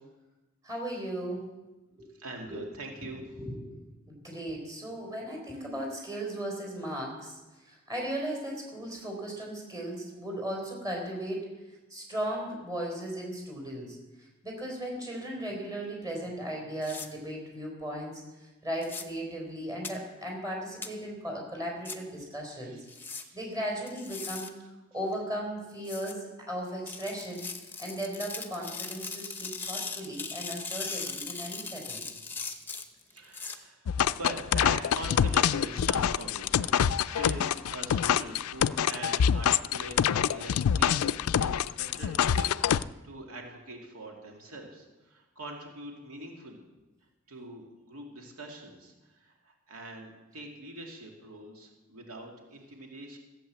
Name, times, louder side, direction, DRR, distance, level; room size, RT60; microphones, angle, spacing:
voice 1, 0.6-1.5 2.0-2.1 2.5-2.6 3.3-3.7 4.1-11.4 11.9-22.8 23.1-24.5 24.9-32.1, right 1 dB, 15° right, -1 dB, 3.9 m, -37 dB
voice 2, 2.2-3.2 22.6-22.8 23.2-23.4 33.1-36.7 37.0-46.6 47.3-53.2, right 1 dB, 85° right, 1 dB, 2.3 m, -43 dB
sound 1, 16.8-17.1 18.8-19.0 19.8-19.9 20.8-20.9 21.8-22.0 22.9-23.2 23.9-24.5 25.8-26.1 26.9-33.6, left 4 dB, 10° left, 0.9 m, -39 dB
sound 2, 33.9-42.8, left 8 dB, 85° left, 0.4 m, -26 dB
15.0 x 8.3 x 7.4 m, 1.1 s
head